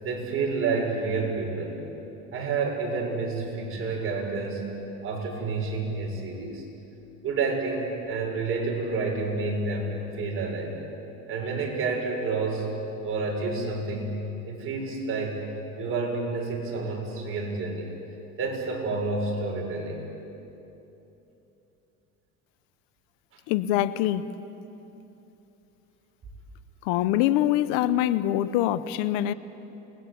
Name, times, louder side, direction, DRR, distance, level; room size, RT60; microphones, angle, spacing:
voice 1, 0.0-1.8 2.3-4.7 5.0-6.6 7.2-10.8 11.3-12.7 13.0-14.2 14.5-15.4 15.8-17.9 18.4-20.0, right 3 dB, 45° right, 0 dB, 6.9 m, -29 dB
voice 2, 23.5-24.2 26.8-29.3, left 13 dB, 90° left, 15 dB, 0.9 m, -24 dB
28.5 x 21.0 x 8.5 m, 3.0 s
cardioid pair, 110°, 29 cm